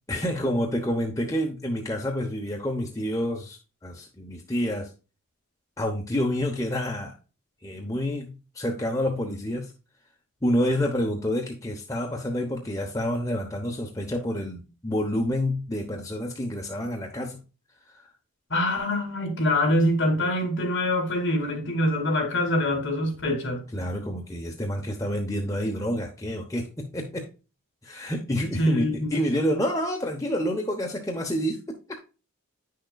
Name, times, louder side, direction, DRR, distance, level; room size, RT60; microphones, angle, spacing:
voice 1, 0.1-4.9 5.8-7.1 7.6-9.7 10.4-17.4 17.9-18.0 23.7-27.3 27.8-31.6, equal, 15° left, 0.8 m, -28 dB
voice 2, 18.5-23.6 28.6-29.1, left 1 dB, 55° left, 2.3 m, -24 dB
9.1 x 6.5 x 2.3 m
head